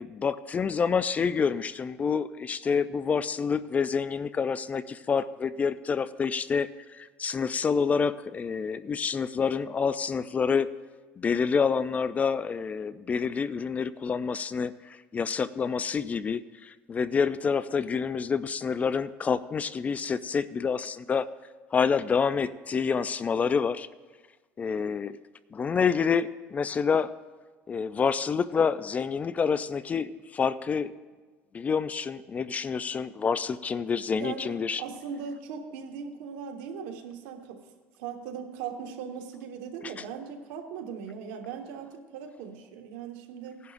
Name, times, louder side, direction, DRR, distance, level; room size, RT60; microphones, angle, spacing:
voice 1, 0.0-10.7 11.2-21.3 21.7-23.9 24.6-25.2 25.5-27.1 27.7-30.9 31.5-34.8 39.8-39.9, left 6 dB, 25° left, 16 dB, 0.4 m, -28 dB
voice 2, 34.1-37.6 38.0-43.6, right 6 dB, 80° right, 4 dB, 1.4 m, -39 dB
18.5 x 11.0 x 2.6 m, 1.4 s
supercardioid pair, 110°, 5 cm